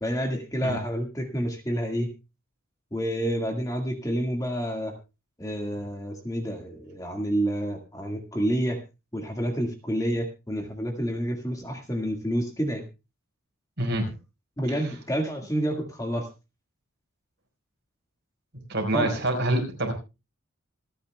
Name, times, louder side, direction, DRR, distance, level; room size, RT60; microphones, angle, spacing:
voice 1, 0.0-2.1 2.9-4.9 5.4-8.8 9.1-12.8 14.6-16.3 18.9-19.2, equal, 15° left, 3 dB, 1.8 m, -29 dB
voice 2, 13.8-14.1 14.8-14.9 18.7-19.9, right 1 dB, 50° right, 2 dB, 4.7 m, -26 dB
26.5 x 10.0 x 2.3 m, 0.28 s
head